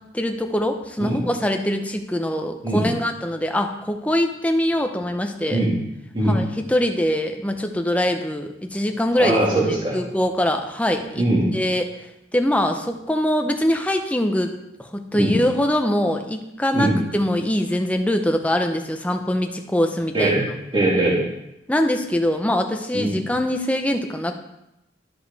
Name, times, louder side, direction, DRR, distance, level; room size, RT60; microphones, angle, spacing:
voice 1, 0.1-5.6 6.2-9.4 9.9-11.3 11.5-11.9 12.3-14.5 14.8-20.3 21.7-24.3, left 1 dB, 10° left, 5 dB, 0.6 m, -23 dB
voice 2, 9.2-10.0 11.2-11.5 15.1-15.4 16.7-17.0 20.1-20.4 20.7-21.2 22.9-23.2, right 1 dB, 30° right, -5 dB, 2.2 m, -21 dB
12.0 x 5.0 x 4.1 m, 0.87 s
head